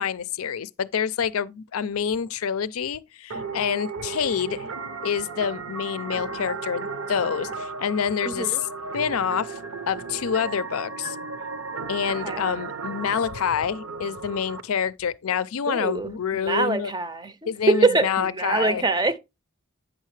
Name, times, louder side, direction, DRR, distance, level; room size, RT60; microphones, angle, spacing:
voice 1, 0.0-4.7 5.0-8.7 8.9-9.6 9.9-11.2 11.9-16.9 17.5-18.9, left 7 dB, 80° left, 0.5 m, -27 dB
sound 1, 3.3-14.6, right 4 dB, 65° right, 0.7 m, -35 dB
voice 2, 8.3-8.6 12.2-12.4 15.7-16.1 16.4-19.2, right 3 dB, 20° right, 0.6 m, -24 dB
9.0 x 6.5 x 3.2 m
head